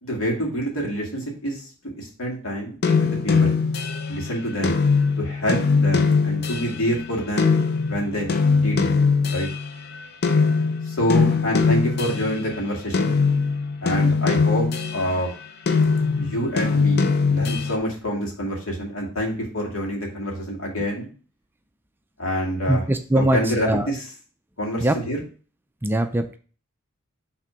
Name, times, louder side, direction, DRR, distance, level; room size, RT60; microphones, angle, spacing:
voice 1, 0.0-1.7 2.0-3.6 4.1-4.8 5.2-7.5 7.9-9.0 9.3-9.5 10.9-13.2 13.8-15.4 16.2-21.1 22.2-22.9 23.2-24.1 24.6-25.2, equal, 75° left, -2 dB, 2.1 m, -27 dB
sound 1, 2.8-10.0 10.2-12.5 12.9-15.2 15.7-17.8, left 4 dB, 50° left, 0.6 m, -21 dB
voice 2, 22.7-23.4 23.6-23.9 24.8-25.0 25.8-26.4, right 1 dB, 10° right, 7 dB, 0.4 m, -21 dB
5.6 x 3.5 x 5.0 m, 0.40 s
head